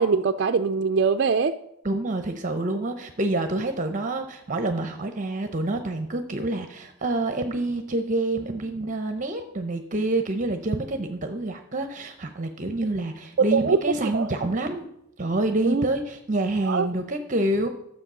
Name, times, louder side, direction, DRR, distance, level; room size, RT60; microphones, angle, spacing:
voice 1, 0.0-1.6 13.4-13.8 14.1-14.3 15.6-15.9 16.6-16.9, right 5 dB, 55° right, 6 dB, 0.4 m, -22 dB
voice 2, 1.8-14.9 15.2-17.7, right 2 dB, 35° right, 7 dB, 0.8 m, -27 dB
12.5 x 7.6 x 6.1 m, 0.80 s
head